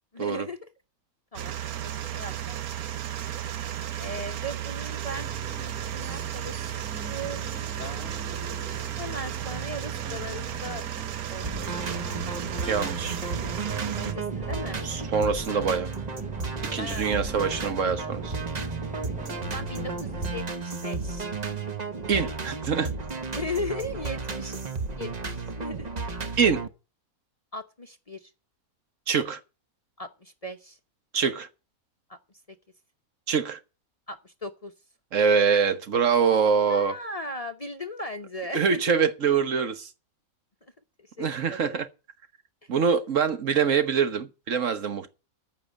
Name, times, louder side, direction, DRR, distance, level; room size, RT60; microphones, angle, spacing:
voice 1, 0.1-0.7 1.3-2.6 4.0-5.3 5.6-10.8 11.3-12.2 14.0-14.9 16.8-17.4 19.4-21.3 23.3-24.6 25.0-25.9 27.5-28.3 30.0-30.8 32.1-32.2 34.1-34.7 36.7-38.9 41.0-41.8, left 1 dB, 30° left, 0.9 m, -38 dB
sound 1, 1.3-14.1, right 11 dB, 85° right, 1.3 m, -34 dB
sound 2, 5.1-20.3, right 3 dB, 10° right, 0.5 m, -41 dB
sound 3, 11.4-26.7, right 4 dB, 35° right, 1.0 m, -33 dB
voice 2, 12.7-13.2 14.8-15.9 16.7-18.3 22.1-22.9 26.4-26.7 29.1-29.4 31.1-31.5 33.3-33.6 35.1-36.9 38.5-39.9 41.2-41.9 42.7-45.1, right 6 dB, 60° right, 1.4 m, -24 dB
14.5 x 5.6 x 8.3 m
omnidirectional pair, 1.5 m